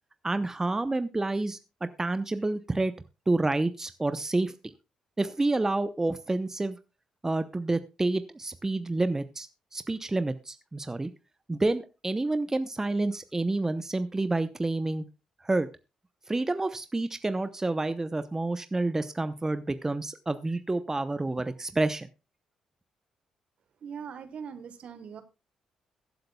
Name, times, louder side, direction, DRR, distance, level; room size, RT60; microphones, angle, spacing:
voice 1, 0.2-2.9 3.3-4.5 5.2-6.8 7.2-9.5 9.7-11.1 11.5-15.0 15.4-15.7 16.3-22.1, right 2 dB, 20° right, 12 dB, 0.8 m, -29 dB
voice 2, 23.8-25.2, right 7 dB, 55° right, 11 dB, 1.3 m, -41 dB
22.0 x 7.8 x 2.3 m, 0.29 s
hypercardioid pair, 45°, 2 cm